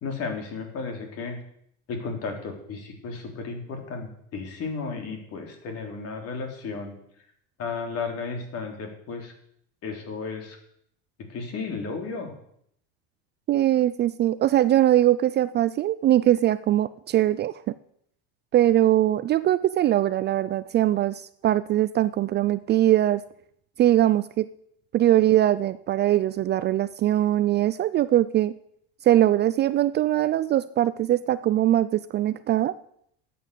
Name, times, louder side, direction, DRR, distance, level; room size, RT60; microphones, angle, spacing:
voice 1, 0.0-1.4 1.9-7.0 7.6-9.3 9.8-10.6 11.3-12.3, left 4 dB, 45° left, 3 dB, 3.7 m, -34 dB
voice 2, 13.5-17.7 18.5-23.2 23.8-24.5 24.9-28.5 29.0-32.7, right 13 dB, 35° right, 15 dB, 0.4 m, -21 dB
13.0 x 8.6 x 6.9 m, 0.71 s
supercardioid pair, 115°, 33 cm